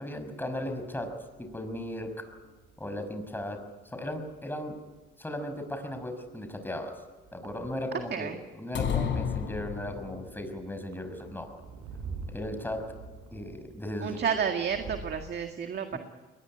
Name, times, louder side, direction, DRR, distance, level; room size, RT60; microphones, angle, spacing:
voice 1, 0.0-2.3 2.8-3.6 3.9-4.8 5.2-7.0 7.3-8.3 8.5-11.5 12.3-13.0 13.3-14.4 15.9-16.0, left 1 dB, 10° left, 6 dB, 5.6 m, -36 dB
sound 1, 1.2-15.3, right 4 dB, 85° right, 6.1 m, -48 dB
sound 2, 8.7-10.3, left 7 dB, 70° left, 4.1 m, -31 dB
voice 2, 14.0-16.0, right 7 dB, 55° right, 6 dB, 2.0 m, -31 dB
22.5 x 20.0 x 9.9 m, 1.3 s
cardioid pair, 90°, 20 cm